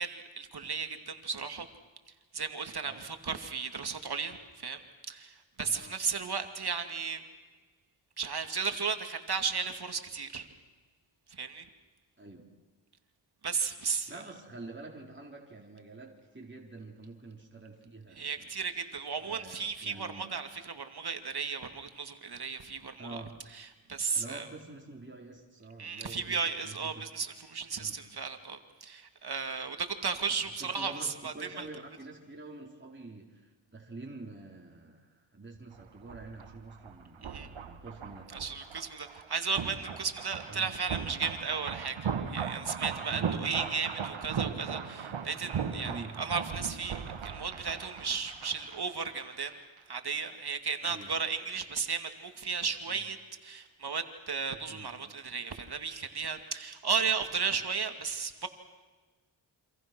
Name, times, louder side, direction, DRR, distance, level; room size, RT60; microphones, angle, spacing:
voice 1, 0.0-1.7 2.3-4.8 5.1-7.2 8.2-10.5 11.3-11.7 13.4-14.1 18.1-23.2 23.5-24.5 25.8-31.7 37.2-37.5 38.3-47.0 47.2-49.6 49.9-53.2 53.4-58.5, right 5 dB, 50° right, 7 dB, 2.5 m, -35 dB
voice 2, 14.1-18.5 19.2-20.2 23.0-23.4 24.1-27.1 27.7-27.9 30.6-38.3 40.5-40.7 43.1-43.4 44.3-44.6 45.8-46.2 50.8-51.1 54.7-54.9, right 3 dB, 25° right, -1 dB, 4.3 m, -47 dB
sound 1, 35.7-49.5 49.8-49.9, right 7 dB, 75° right, 2.0 m, -38 dB
27.5 x 26.5 x 6.3 m, 1.3 s
cardioid pair, 45°, 48 cm